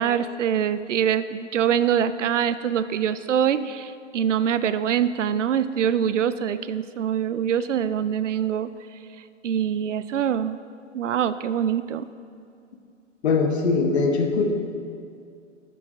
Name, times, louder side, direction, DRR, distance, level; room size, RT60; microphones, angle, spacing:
voice 1, 0.0-8.7 9.4-10.6 10.9-12.1, right 9 dB, 75° right, 14 dB, 0.5 m, -24 dB
voice 2, 13.2-14.5, left 4 dB, 60° left, 4 dB, 1.2 m, -21 dB
13.0 x 7.0 x 2.7 m, 2.4 s
hypercardioid pair, 125°, 37 cm